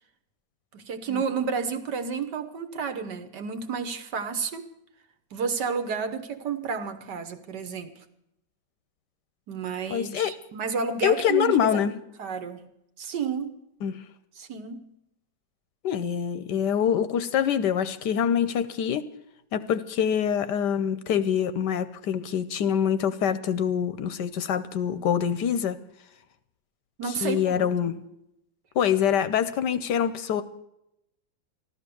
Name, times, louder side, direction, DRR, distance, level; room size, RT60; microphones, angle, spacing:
voice 1, 0.7-4.6 5.3-7.9 9.5-11.8 12.2-12.7 13.0-13.6 14.4-14.9 27.0-28.0, right 5 dB, 65° right, 9 dB, 1.7 m, -31 dB
voice 2, 9.9-10.3 11.0-11.9 13.8-14.0 15.8-19.0 19.5-25.8 27.2-28.0 28.8-30.4, left 8 dB, 70° left, 13 dB, 1.2 m, -25 dB
14.5 x 12.0 x 6.9 m, 0.82 s
omnidirectional pair, 2.1 m